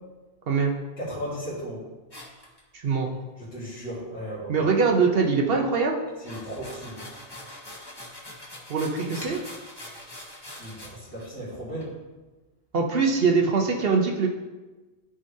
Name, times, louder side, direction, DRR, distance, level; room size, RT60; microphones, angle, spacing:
voice 1, 1.0-1.9 3.4-4.5 6.2-7.0 10.6-11.9, equal, 65° left, -10 dB, 2.2 m, -35 dB
sound 1, 2.1-3.1 6.1-10.9 11.2-11.3 11.8-11.9, left 1 dB, 20° left, 1.3 m, -42 dB
voice 2, 2.7-3.1 4.5-6.0 8.7-9.4 12.7-14.3, right 4 dB, 60° right, 2 dB, 0.9 m, -22 dB
11.0 x 5.0 x 2.7 m, 1.2 s
omnidirectional pair, 1.1 m